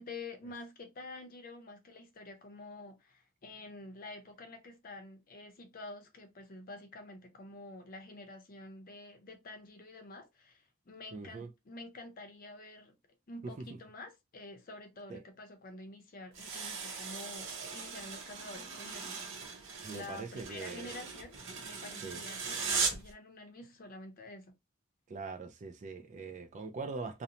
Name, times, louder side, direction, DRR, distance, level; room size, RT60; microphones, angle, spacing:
voice 1, 0.0-12.9 13.3-24.5, left 2 dB, 45° left, 0.6 m, -48 dB
voice 2, 11.1-11.5 13.4-13.5 15.1-15.2 19.8-20.9 22.0-22.2 25.1-27.2, right 4 dB, 35° right, 0.3 m, -42 dB
sound 1, 16.3-23.1, right 5 dB, 65° right, 0.7 m, -39 dB
2.6 x 2.1 x 2.8 m
head